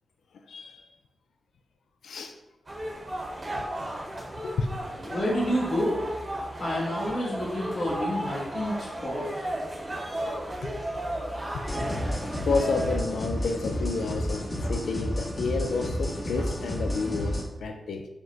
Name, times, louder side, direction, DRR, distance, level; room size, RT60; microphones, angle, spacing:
voice 1, 0.5-0.8 2.0-2.4 3.9-4.0 4.4-5.2 10.6-10.7 11.7-11.9 12.5-18.1, left 4 dB, 85° left, 5 dB, 0.3 m, -30 dB
sound 1, 2.7-13.0, right 1 dB, 35° right, 0.9 m, -34 dB
voice 2, 5.1-6.0 6.6-9.4, equal, 50° left, -5 dB, 1.1 m, -29 dB
sound 2, 11.6-17.4, equal, 35° left, 0.9 m, -31 dB
4.9 x 2.1 x 3.8 m, 0.96 s
wide cardioid pair, 115°, 0 cm